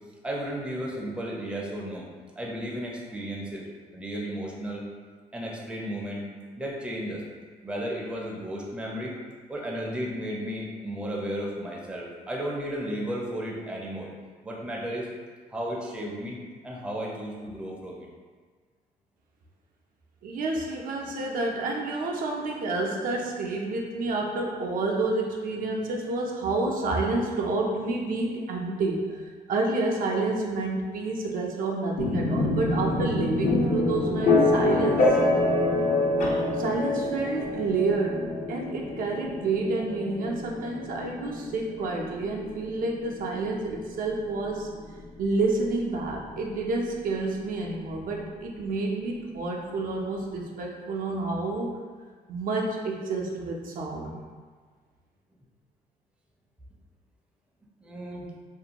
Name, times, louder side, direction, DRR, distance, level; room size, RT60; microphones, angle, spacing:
voice 1, 0.2-2.1 2.4-3.6 3.9-4.8 5.3-6.3 6.6-7.2 7.6-9.1 9.5-14.1 14.4-15.1 15.5-16.4 16.6-18.1 57.8-58.3, equal, 5° right, -3 dB, 0.4 m, -34 dB
voice 2, 20.2-29.0 29.5-35.2 36.5-38.2 38.5-44.7 45.2-51.7 52.3-54.2, right 3 dB, 65° right, -1 dB, 0.4 m, -29 dB
sound 1, 32.0-45.7, left 2 dB, 55° left, 0.5 m, -26 dB
2.5 x 2.2 x 2.8 m, 1.5 s
cardioid pair, 105°, 15 cm